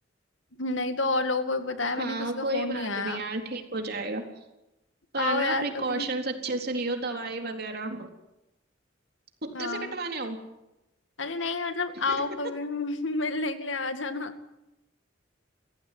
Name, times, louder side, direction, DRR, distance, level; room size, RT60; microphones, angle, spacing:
voice 1, 0.6-3.2 5.2-6.1 9.5-10.0 11.2-14.3, left 3 dB, 85° left, 8 dB, 2.2 m, -30 dB
voice 2, 2.0-4.3 5.1-8.1 9.4-10.4 11.9-12.2, right 2 dB, 55° right, 4 dB, 3.9 m, -32 dB
29.0 x 15.5 x 9.4 m, 0.95 s
head